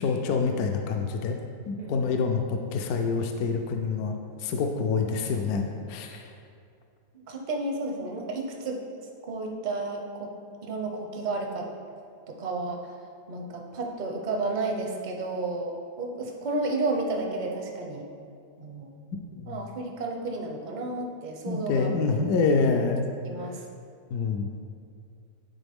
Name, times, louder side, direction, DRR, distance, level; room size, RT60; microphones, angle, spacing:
voice 1, 0.0-1.4 1.7-6.3 19.3-19.6 21.5-23.1 24.1-24.5, left 4 dB, 75° left, 4 dB, 1.0 m, -27 dB
voice 2, 7.1-10.3 10.6-11.7 12.4-12.9 13.3-18.0 18.6-18.9 19.5-21.9 23.2-23.6, right 2 dB, 50° right, 1 dB, 0.5 m, -32 dB
9.9 x 4.0 x 3.5 m, 2.4 s
omnidirectional pair, 1.7 m